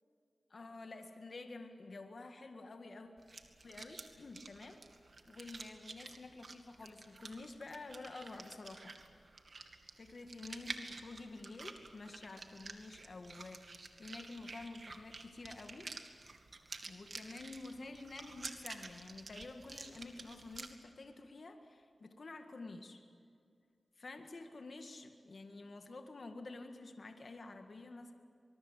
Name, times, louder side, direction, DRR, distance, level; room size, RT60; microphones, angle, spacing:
voice 1, 0.5-3.1 3.6-4.8 5.3-8.9 10.0-15.9 16.8-23.0 24.0-28.1, left 3 dB, 65° left, 5 dB, 1.9 m, -49 dB
sound 1, 3.2-20.7, right 3 dB, 60° right, 2.3 m, -50 dB
25.0 x 22.5 x 8.2 m, 2.3 s
cardioid pair, 55°, 0 cm